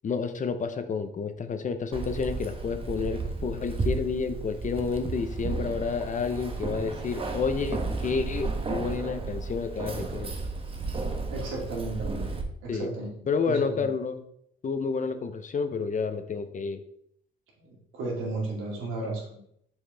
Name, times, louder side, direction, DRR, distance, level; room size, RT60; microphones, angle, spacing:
voice 1, 0.0-10.3 12.7-12.9 13.3-14.2 14.6-16.8, left 5 dB, 40° left, 9 dB, 0.6 m, -30 dB
Keys jangling, 1.9-12.4, right 3 dB, 25° right, 1.0 m, -33 dB
voice 2, 11.3-12.3 12.6-13.1 13.5-13.9 17.6-19.4, right 2 dB, 85° right, -3 dB, 2.4 m, -34 dB
6.5 x 4.6 x 3.4 m, 0.70 s
cardioid pair, 90°, 20 cm